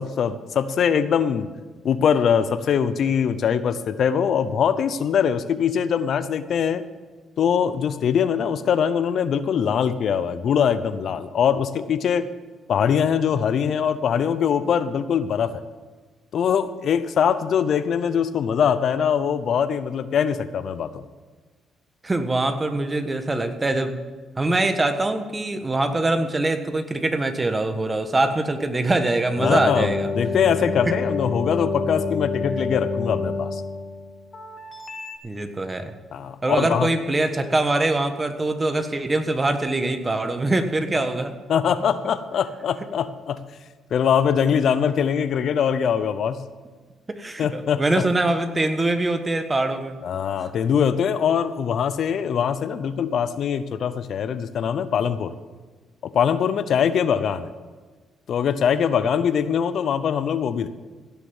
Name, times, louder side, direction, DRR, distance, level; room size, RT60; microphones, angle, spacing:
voice 1, 0.0-1.5 1.8-6.8 7.4-12.3 12.7-15.6 16.3-21.0 29.4-33.6 36.1-36.9 41.5-43.4 43.9-46.4 47.4-48.0 50.0-55.3 56.0-57.5 58.3-60.7, left 7 dB, 65° left, 13 dB, 0.7 m, -22 dB
voice 2, 22.0-24.0 24.4-30.1 35.2-35.9 36.4-41.4 47.1-50.0, right 2 dB, 20° right, 7 dB, 1.4 m, -23 dB
sound 1, 29.4-35.2, left 4 dB, 35° left, 1.6 m, -28 dB
16.5 x 6.8 x 7.1 m, 1.4 s
cardioid pair, 90°, 0 cm